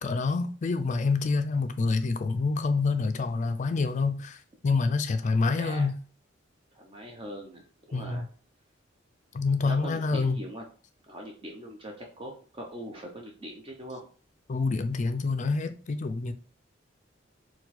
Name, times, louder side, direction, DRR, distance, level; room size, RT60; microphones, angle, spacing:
voice 1, 0.0-6.0 7.9-8.2 9.3-10.4 14.5-16.3, left 4 dB, 40° left, 0.4 m, -27 dB
voice 2, 5.5-5.9 6.7-8.2 9.6-10.7 11.1-14.0, equal, 25° right, 0.6 m, -41 dB
4.4 x 2.3 x 4.1 m
head